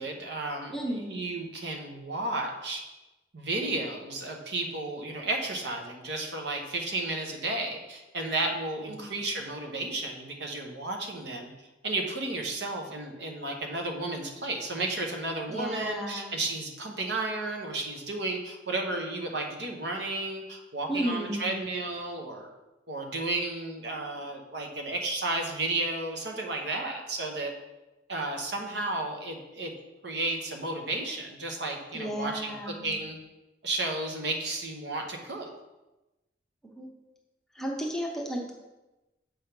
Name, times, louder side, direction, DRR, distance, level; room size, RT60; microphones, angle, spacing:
voice 1, 0.0-2.8 3.3-11.5 11.8-22.5 22.9-27.5 28.1-29.7 30.0-33.2 33.6-35.5, right 2 dB, 60° right, 2 dB, 1.0 m, -33 dB
voice 2, 0.7-1.3 8.9-9.0 15.5-16.4 20.9-21.6 31.9-32.9 36.6-36.9 37.5-38.5, equal, ahead, -1 dB, 0.8 m, -33 dB
7.3 x 3.5 x 5.8 m, 1.0 s
head